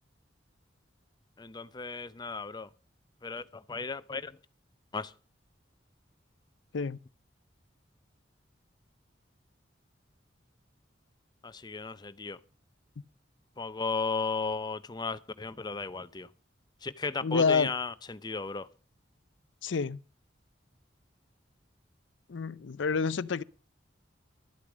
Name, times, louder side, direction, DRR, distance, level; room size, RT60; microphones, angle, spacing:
voice 1, 1.4-2.7 3.2-4.4 4.9-5.1 11.4-12.4 13.6-16.3 16.8-18.7, left 4 dB, 25° left, 0.6 m, -35 dB
voice 2, 17.2-17.7 19.6-20.0 22.3-23.4, left 5 dB, 80° left, 0.5 m, -28 dB
12.5 x 8.4 x 6.1 m
head